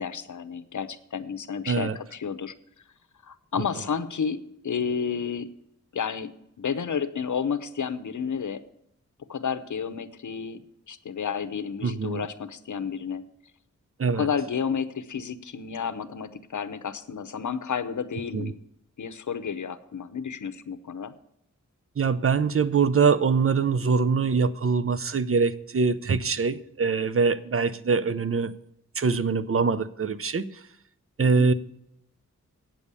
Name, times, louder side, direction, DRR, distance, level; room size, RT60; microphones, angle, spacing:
voice 1, 0.0-2.5 3.2-5.5 5.9-8.6 9.3-10.6 10.9-13.2 14.1-18.5 19.0-21.1 31.2-31.5, left 6 dB, 70° left, 0.8 m, -31 dB
voice 2, 1.7-2.0 11.8-12.3 14.0-14.3 18.3-18.5 22.0-28.5 29.0-30.6 31.2-31.5, right 5 dB, 45° right, 0.6 m, -23 dB
9.2 x 7.1 x 8.2 m
wide cardioid pair, 105°, 30 cm